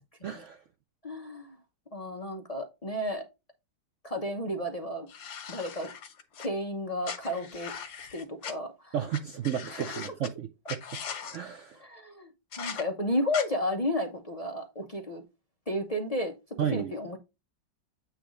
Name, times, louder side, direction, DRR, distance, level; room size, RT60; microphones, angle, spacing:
voice 1, 0.2-0.6 8.9-11.0 11.3-11.8 16.6-16.9, right 9 dB, 80° right, 0.6 m, -33 dB
voice 2, 1.0-1.6 1.9-3.2 4.0-5.1 5.5-5.9 6.4-7.7 8.1-8.9 9.7-10.0 11.8-12.3 12.6-15.2 15.7-16.3 16.7-17.2, left 1 dB, 40° left, 0.5 m, -32 dB
sound 1, 5.1-6.5 7.0-8.5 9.1-9.2 9.4-10.3 10.7-11.4 12.5-12.8 13.3-13.4, left 7 dB, 90° left, 1.9 m, -39 dB
8.8 x 3.2 x 5.0 m
omnidirectional pair, 2.0 m